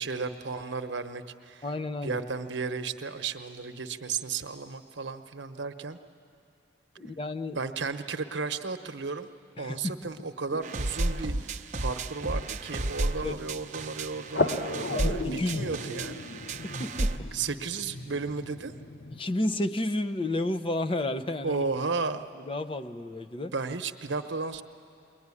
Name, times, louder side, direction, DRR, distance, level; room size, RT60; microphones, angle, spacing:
voice 1, 0.0-1.6 2.0-6.0 7.5-9.3 9.6-15.2 15.5-16.3 17.3-18.7 21.4-22.3 23.5-24.6, right 4 dB, 80° right, 8 dB, 1.0 m, -34 dB
voice 2, 1.6-2.2 7.0-7.6 9.6-10.0 13.2-13.4 14.9-15.7 16.6-17.3 19.1-21.6 22.5-23.5, left 1 dB, 30° left, 11 dB, 0.7 m, -31 dB
sound 1, 10.6-17.2, right 2 dB, 40° right, 0.8 m, -33 dB
sound 2, 12.2-19.2, left 3 dB, 60° left, 0.8 m, -36 dB
22.0 x 21.5 x 9.8 m, 2.5 s
head